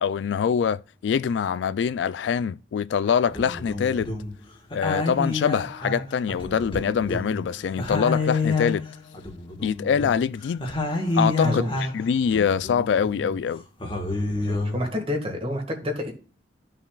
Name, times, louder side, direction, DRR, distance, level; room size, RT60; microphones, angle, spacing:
voice 1, 0.0-4.1 4.7-8.8 9.6-10.6 10.9-13.6, left 7 dB, 75° left, 0.3 m, -24 dB
sound 1, 3.1-4.4 4.7-7.5 7.8-12.1 12.3-13.4 13.8-15.0, left 3 dB, 30° left, 1.5 m, -29 dB
voice 2, 11.4-11.7 14.3-16.1, left 1 dB, 30° right, 1.8 m, -29 dB
13.5 x 5.6 x 2.4 m
head